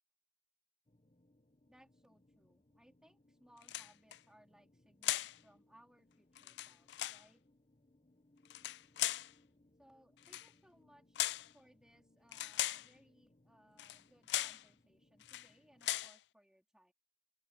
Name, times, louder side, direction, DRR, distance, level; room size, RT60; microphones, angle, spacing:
sound 1, 0.9-16.1, left 1 dB, 35° left, 1.2 m, -71 dB
voice 1, 1.7-7.4 9.8-16.9, equal, 5° right, 4.1 m, -67 dB
sound 2, 3.6-4.2 5.0-5.4 6.4-7.2 8.5-9.3 10.2-10.5 11.2-11.5 12.3-12.9 13.8-14.0 14.3-14.6 15.2-15.5 15.8-16.2, left 15 dB, 65° left, 0.3 m, -38 dB
open air
head